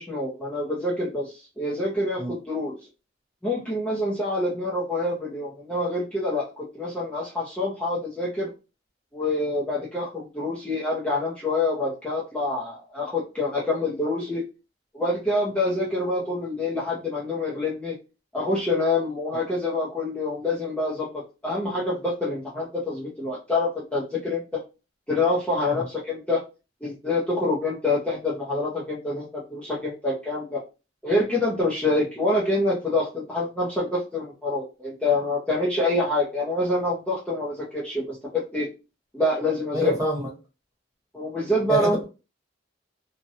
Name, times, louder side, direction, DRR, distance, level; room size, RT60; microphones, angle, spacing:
voice 1, 0.0-2.7 3.4-8.5 9.1-14.5 14.9-18.0 18.3-24.4 25.1-26.4 26.8-30.6 31.0-38.7 39.1-39.9 41.1-42.0, left 2 dB, 5° left, -6 dB, 0.5 m, -26 dB
voice 2, 39.7-40.3 41.7-42.0, right 1 dB, 20° right, -2 dB, 1.0 m, -25 dB
2.7 x 2.1 x 2.7 m, 0.30 s
head